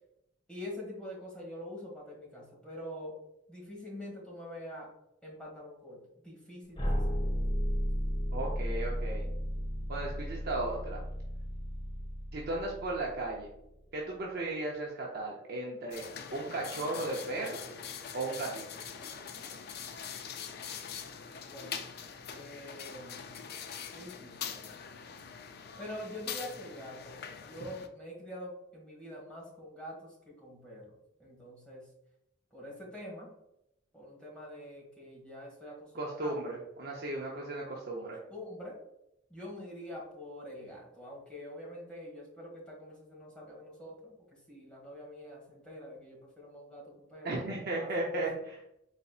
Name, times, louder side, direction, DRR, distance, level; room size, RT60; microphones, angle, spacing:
voice 1, 0.5-3.2 3.5-4.9 5.2-6.0 6.2-7.3 21.4-21.9 22.3-23.3 23.9-24.7 25.8-30.9 31.2-31.9 32.5-33.3 33.9-36.4 38.3-38.8 39.3-47.4 47.8-48.2, left 1 dB, 5° left, -4 dB, 1.5 m, -45 dB
sound 1, 6.8-13.7, equal, 25° left, 0.8 m, -34 dB
voice 2, 8.3-9.3 9.9-11.0 12.3-13.5 13.9-17.6 18.1-18.6 35.9-38.2 47.2-48.6, right 2 dB, 55° right, -2 dB, 0.6 m, -35 dB
sound 2, 15.9-27.9, left 7 dB, 55° left, 0.4 m, -43 dB
4.2 x 4.0 x 2.3 m, 0.82 s
head